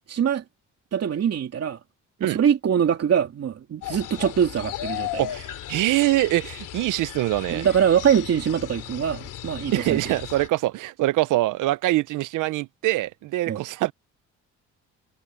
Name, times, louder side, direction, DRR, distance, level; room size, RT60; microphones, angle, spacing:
voice 1, 0.1-0.4 0.9-1.8 2.2-5.2 7.5-10.0 13.5-13.6, right 8 dB, 55° right, 2.8 m, -23 dB
sound 1, 3.8-10.5, left 13 dB, 85° left, 3.5 m, -36 dB
voice 2, 5.2-7.6 9.7-13.9, right 17 dB, 90° right, 0.8 m, -24 dB
cardioid pair, 90°, 30 cm